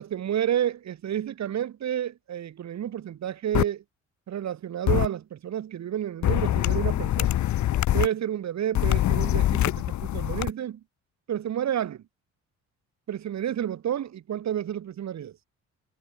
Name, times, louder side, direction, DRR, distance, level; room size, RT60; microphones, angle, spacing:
voice 1, 0.0-3.8 4.3-7.4 7.9-10.8 11.3-12.0 13.1-15.4, right 10 dB, 65° right, 3.7 m, -30 dB
sound 1, 3.5-3.6 4.9-5.1 6.2-8.1 8.7-10.5, left 13 dB, 70° left, 1.2 m, -24 dB
cardioid pair, 90°, 30 cm